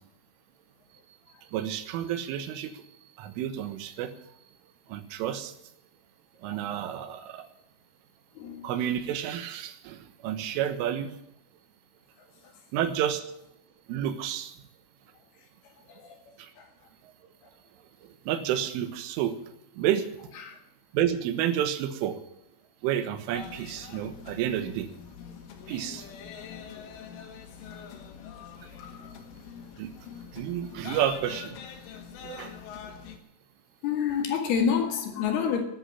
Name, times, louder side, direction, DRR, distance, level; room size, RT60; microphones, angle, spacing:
voice 1, 1.5-2.8 3.2-4.1 4.9-5.5 6.4-7.5 8.6-11.1 12.7-13.3 13.9-14.5 16.4-16.5 18.0-19.4 19.8-20.1 20.9-22.2 22.8-24.9 25.7-26.1 29.8-29.9 30.3-31.6 32.2-32.6, right 10 dB, 85° right, 10 dB, 3.8 m, -30 dB
voice 2, 8.4-8.7 15.9-16.1 16.6-16.7 20.4-20.6 27.7-27.8 28.8-29.1 33.8-35.6, left 7 dB, 60° left, 5 dB, 3.4 m, -29 dB
sound 1, 23.3-33.2, left 7 dB, 80° left, 4.3 m, -44 dB
13.0 x 11.0 x 10.0 m, 0.78 s
omnidirectional pair, 5.5 m